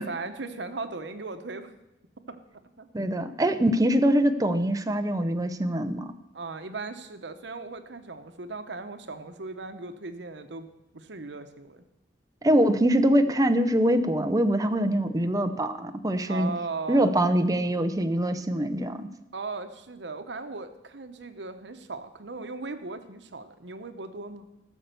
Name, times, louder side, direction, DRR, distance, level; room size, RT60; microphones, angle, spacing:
voice 1, 0.0-1.7 2.3-2.4 2.8-2.9 6.3-10.7 10.9-11.8 16.3-17.1 19.3-24.5, right 3 dB, 80° right, 9 dB, 1.0 m, -37 dB
voice 2, 2.9-6.1 12.4-16.5 16.9-19.1, right 1 dB, 20° right, 8 dB, 0.6 m, -23 dB
14.5 x 6.8 x 6.9 m, 0.92 s
head